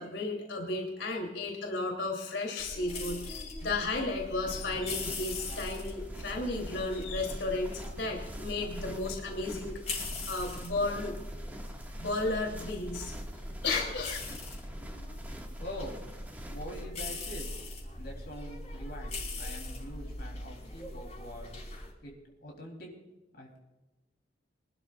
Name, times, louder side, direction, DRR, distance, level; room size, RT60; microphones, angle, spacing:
voice 1, 0.0-11.1 12.0-13.1 13.6-14.3, left 2 dB, 85° left, 1 dB, 3.1 m, -34 dB
sound 1, 2.6-21.9, left 2 dB, 35° left, 4.9 m, -41 dB
sound 2, 4.5-16.8, equal, 10° right, 1.8 m, -47 dB
voice 2, 15.6-16.0 16.5-17.7 17.9-21.6 22.0-22.1 22.4-22.9 23.3-23.6, equal, 60° left, 0 dB, 3.5 m, -44 dB
25.0 x 12.5 x 2.5 m, 1.0 s
head